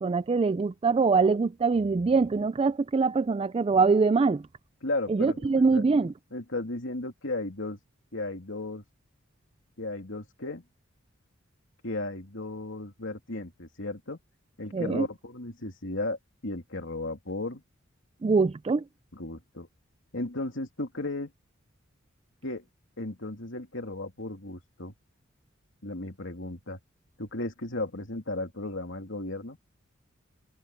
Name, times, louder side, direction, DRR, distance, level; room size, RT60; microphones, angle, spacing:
voice 1, 0.0-4.4 5.1-6.1 14.7-15.1 18.2-18.8, right 4 dB, 25° right, 0.3 m, -23 dB
voice 2, 4.8-5.8 6.3-7.8 8.1-8.8 9.8-10.6 11.8-14.2 14.6-16.2 16.4-17.6 19.1-19.7 20.1-21.3 22.4-22.6 23.0-24.9 25.8-26.8 27.2-29.6, left 2 dB, 70° left, 3.0 m, -35 dB
head